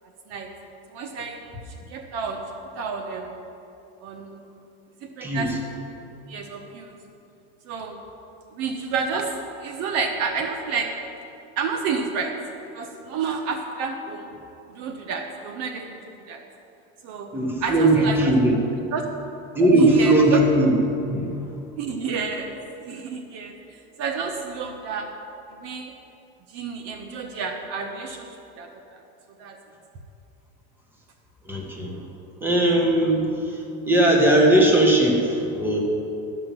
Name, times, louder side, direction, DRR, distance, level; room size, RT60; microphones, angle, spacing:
voice 1, 0.9-1.4 1.7-2.4 2.7-3.3 4.0-4.4 5.2-5.5 6.3-7.0 7.7-8.0 8.5-9.3 9.6-10.9 11.6-12.3 12.7-14.3 14.7-16.0 16.3-16.4 17.0-17.3 17.6-18.3 18.9-19.1 19.7-20.4 21.8-22.5 22.9-23.6 24.0-25.1 25.5-25.9 26.5-29.0 29.4-29.6, right 5 dB, 55° right, 4 dB, 1.1 m, -30 dB
voice 2, 17.3-18.6 19.5-20.7 21.1-21.4 31.4-32.0 32.4-35.8, right 1 dB, 5° right, -1 dB, 1.7 m, -19 dB
12.0 x 6.0 x 7.5 m, 2.7 s
supercardioid pair, 140°, 31 cm